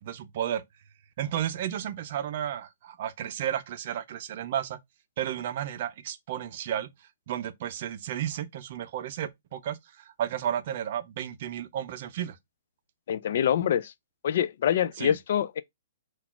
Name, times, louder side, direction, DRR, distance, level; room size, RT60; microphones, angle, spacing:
voice 1, 0.0-0.6 1.2-4.8 5.2-6.9 7.3-12.4 15.0-15.2, right 10 dB, 40° right, 0.5 m, -33 dB
voice 2, 13.1-13.9 14.2-15.6, left 9 dB, 50° left, 0.4 m, -25 dB
4.0 x 2.4 x 4.3 m
hypercardioid pair, 165°, 0 cm